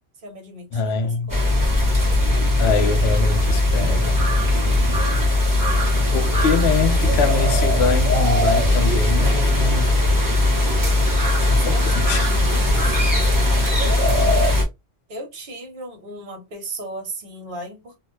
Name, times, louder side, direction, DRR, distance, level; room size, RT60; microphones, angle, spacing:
voice 1, 0.2-1.7 11.5-14.4 15.1-18.0, right 1 dB, 55° right, 1.1 m, -37 dB
voice 2, 0.7-1.3 2.6-4.2 6.1-10.0 11.5-12.3, left 5 dB, 75° left, 0.8 m, -24 dB
sound 1, 1.3-14.6, left 1 dB, 20° right, 0.8 m, -19 dB
2.7 x 2.1 x 3.0 m
omnidirectional pair, 1.1 m